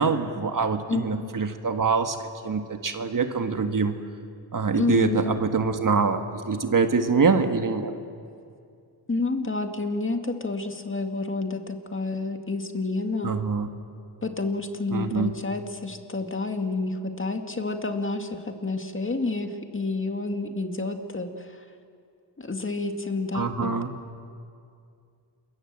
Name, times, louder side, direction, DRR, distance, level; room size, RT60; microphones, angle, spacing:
voice 1, 0.0-2.2 2.4-3.9 4.5-7.9 13.2-13.7 14.9-15.3 23.3-23.9, right 4 dB, 45° right, 7 dB, 1.7 m, -24 dB
voice 2, 0.9-1.5 4.8-5.3 9.1-13.4 14.2-21.6 22.4-23.7, left 3 dB, 25° left, 6 dB, 2.0 m, -29 dB
27.5 x 22.5 x 7.5 m, 2.4 s
cardioid pair, 85°, 44 cm